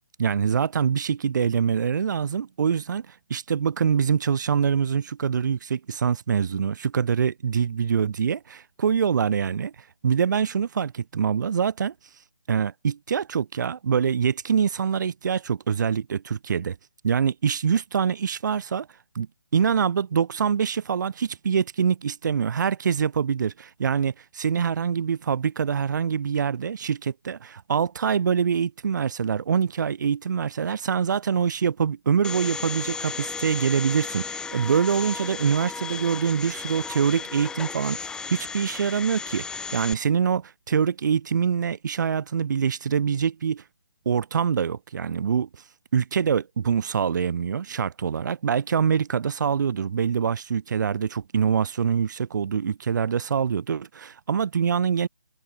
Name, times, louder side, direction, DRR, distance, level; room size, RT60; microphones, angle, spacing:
voice 1, 0.2-9.7 10.0-11.9 12.5-16.8 17.0-18.9 19.1-19.3 19.5-43.6 44.0-45.5 45.9-55.1, right 7 dB, 55° right, 1.1 m, -24 dB
Domestic sounds home sounds, 32.2-39.9, left 5 dB, 5° left, 1.5 m, -34 dB
hypercardioid pair, 155°, 12 cm